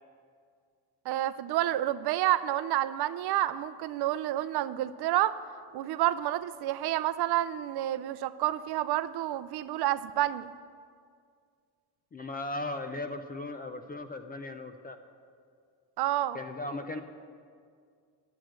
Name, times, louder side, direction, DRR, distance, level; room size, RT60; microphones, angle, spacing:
voice 1, 1.1-5.4 5.7-10.5 16.0-16.4, right 13 dB, 60° right, 14 dB, 0.5 m, -29 dB
voice 2, 12.1-15.0 16.3-17.0, left 2 dB, 25° left, 7 dB, 0.3 m, -37 dB
12.0 x 7.7 x 8.6 m, 2.1 s
cardioid pair, 170°, 45 cm